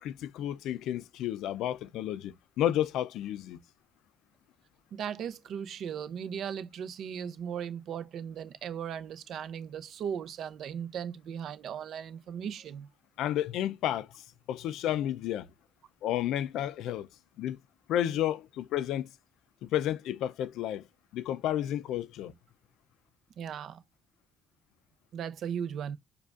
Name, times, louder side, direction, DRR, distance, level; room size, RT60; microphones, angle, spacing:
voice 1, 0.0-3.6 13.2-15.5 16.0-17.1 17.4-17.6 17.9-19.1 19.6-20.8 21.1-22.3, left 12 dB, 90° left, 0.3 m, -31 dB
voice 2, 4.9-12.9 23.4-23.8 25.1-26.0, right 8 dB, 70° right, 0.5 m, -37 dB
4.9 x 2.3 x 2.3 m
cardioid pair, 90°, 0 cm